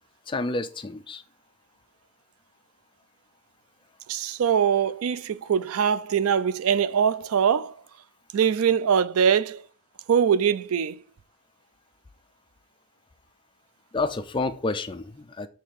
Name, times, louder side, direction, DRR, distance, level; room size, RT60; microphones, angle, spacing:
voice 1, 0.3-1.2 13.9-15.5, left 3 dB, 20° left, 0.4 m, -29 dB
voice 2, 4.1-7.7 8.3-9.6 10.1-11.0, right 7 dB, 80° right, 0.4 m, -22 dB
7.3 x 3.3 x 4.8 m
head